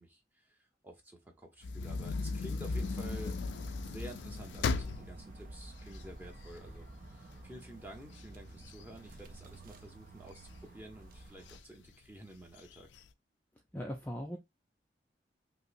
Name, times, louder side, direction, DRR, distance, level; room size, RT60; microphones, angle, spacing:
voice 1, 0.0-3.4 3.8-12.9, right 1 dB, 10° right, 0.9 m, -51 dB
sound 1, 1.6-6.8 7.3-7.4 7.7-9.8 10.3-10.9 11.5-11.6 11.9-12.0 12.4-13.0, left 4 dB, 85° left, 0.4 m, -37 dB
sound 2, 2.6-11.6, right 2 dB, 50° right, 0.5 m, -50 dB
voice 2, 13.7-14.4, equal, 10° left, 0.4 m, -39 dB
5.3 x 2.0 x 2.6 m
head